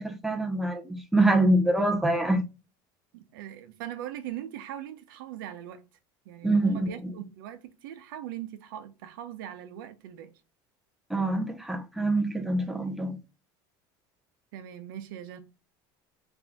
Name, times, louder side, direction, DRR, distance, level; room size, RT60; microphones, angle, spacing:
voice 1, 0.0-2.5 6.4-7.1 11.1-13.2, right 2 dB, ahead, 0.6 m, -25 dB
voice 2, 3.1-5.8 6.2-10.3 14.5-15.4, right 11 dB, 90° right, 0.7 m, -40 dB
3.4 x 2.6 x 3.3 m
supercardioid pair, 130°, 11 cm